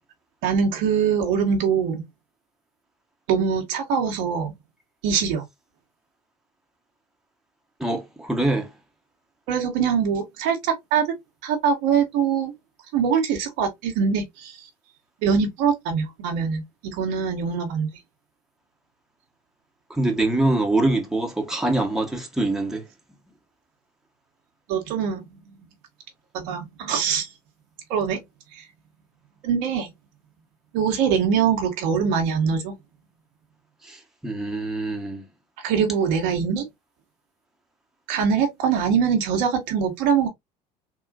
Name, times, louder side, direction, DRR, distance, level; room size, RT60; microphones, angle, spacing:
voice 1, 0.4-2.0 3.3-4.5 5.0-5.4 9.5-11.0 11.4-12.5 12.9-14.6 15.2-17.9 24.7-25.5 26.3-27.3 27.9-28.2 28.6-28.7 29.4-29.9 30.7-32.7 35.6-36.7 38.1-40.3, right 7 dB, 60° right, 1.1 m, -23 dB
voice 2, 7.8-8.7 19.9-22.9 33.8-35.3, right 2 dB, ahead, 1.1 m, -24 dB
3.8 x 2.4 x 2.4 m
hypercardioid pair, 70°, 21 cm